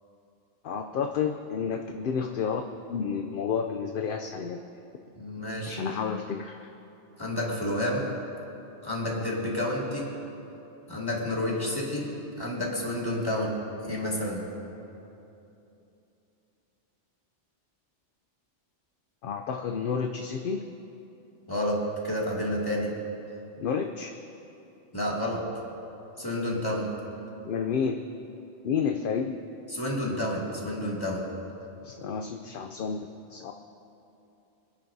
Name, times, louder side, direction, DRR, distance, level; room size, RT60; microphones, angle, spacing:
voice 1, 0.6-2.6 2.9-4.6 5.7-6.7 19.2-20.6 23.6-24.2 27.4-28.0 28.6-29.4 31.8-33.0 33.3-33.5, left 6 dB, 60° left, 4 dB, 0.6 m, -30 dB
voice 2, 5.1-5.8 7.2-8.1 8.8-10.1 10.9-12.1 12.4-13.6 13.8-14.5 21.5-22.9 24.9-25.5 26.2-26.9 29.7-31.3, left 1 dB, 20° left, -4 dB, 2.2 m, -30 dB
26.5 x 10.5 x 2.7 m, 2.9 s
omnidirectional pair, 1.2 m